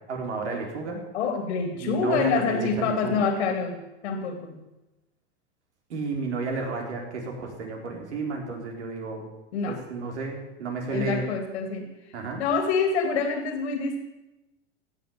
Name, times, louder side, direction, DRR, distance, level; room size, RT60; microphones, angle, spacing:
voice 1, 0.1-1.0 1.7-3.2 5.9-9.3 9.7-11.2 12.1-12.4, right 3 dB, 80° right, 1 dB, 4.2 m, -32 dB
voice 2, 1.1-3.8 4.0-4.6 9.5-9.8 10.9-11.9 12.4-14.0, left 5 dB, 75° left, 5 dB, 2.7 m, -26 dB
16.0 x 8.4 x 7.1 m, 1.0 s
hypercardioid pair, 105°, 34 cm